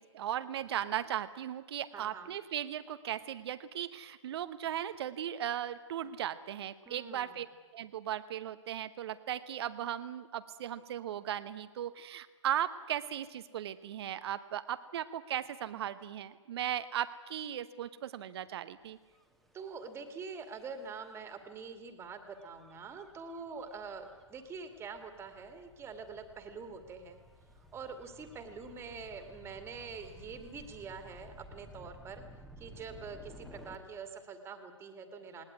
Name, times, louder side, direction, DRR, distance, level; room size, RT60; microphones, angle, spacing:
voice 1, 0.0-7.5 7.7-19.0, right 11 dB, 55° right, 12 dB, 1.0 m, -37 dB
voice 2, 1.9-2.3 6.9-7.4 19.5-27.2 27.7-32.2 32.6-35.4, right 5 dB, 15° right, 9 dB, 2.3 m, -45 dB
Gull seagull / Waves surf / Siren, 19.0-33.8, left 1 dB, ahead, 1.6 m, -56 dB
20.0 x 18.5 x 9.6 m, 1.4 s
hypercardioid pair, 130°, 16 cm